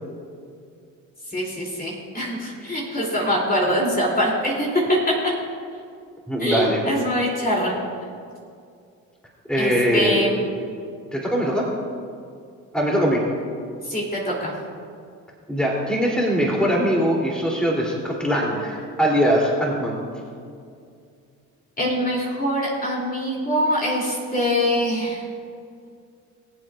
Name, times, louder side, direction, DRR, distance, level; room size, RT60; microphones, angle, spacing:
voice 1, 1.3-4.8 6.4-7.7 9.6-10.4 13.9-14.5 21.8-25.2, equal, 25° left, -3 dB, 3.1 m, -23 dB
voice 2, 6.3-6.8 9.5-10.2 11.1-11.7 12.7-13.2 15.5-20.0, equal, ahead, -3 dB, 3.1 m, -21 dB
23.0 x 7.8 x 2.5 m, 2.3 s
supercardioid pair, 75°, 35 cm